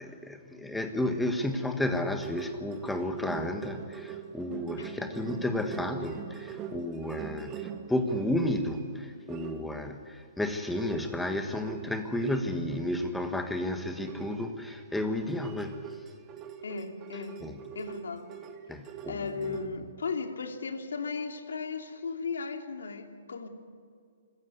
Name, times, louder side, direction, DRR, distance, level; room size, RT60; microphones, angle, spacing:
voice 1, 0.0-16.0 17.4-17.6 18.7-19.7, left 1 dB, 5° left, 6 dB, 1.4 m, -32 dB
sound 1, 1.9-8.9 9.3-10.0 10.5-12.4 12.8-13.1 13.4-13.6 14.0-19.7, right 8 dB, 20° right, 1.3 m, -43 dB
voice 2, 16.6-17.3 17.7-18.2 19.1-23.5, left 4 dB, 90° left, 5 dB, 2.9 m, -36 dB
25.5 x 15.5 x 9.5 m, 2.2 s
hypercardioid pair, 165°, 0 cm